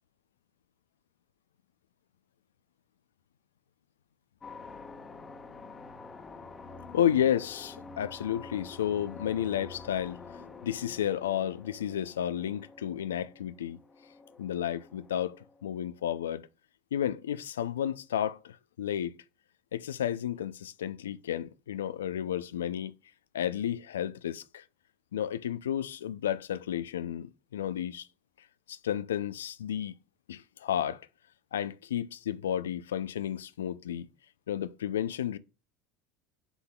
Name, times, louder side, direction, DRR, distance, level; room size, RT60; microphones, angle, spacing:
sound 1, 4.4-15.9, left 4 dB, 30° left, 1.1 m, -48 dB
voice 1, 6.9-10.2 10.6-13.8 14.4-16.5 16.9-19.1 19.7-22.9 23.3-24.6 25.1-28.1 28.7-29.9 30.3-31.1 31.5-34.1 34.5-35.4, left 10 dB, 85° left, 0.4 m, -32 dB
8.0 x 5.7 x 2.2 m
hypercardioid pair, 80°, 0 cm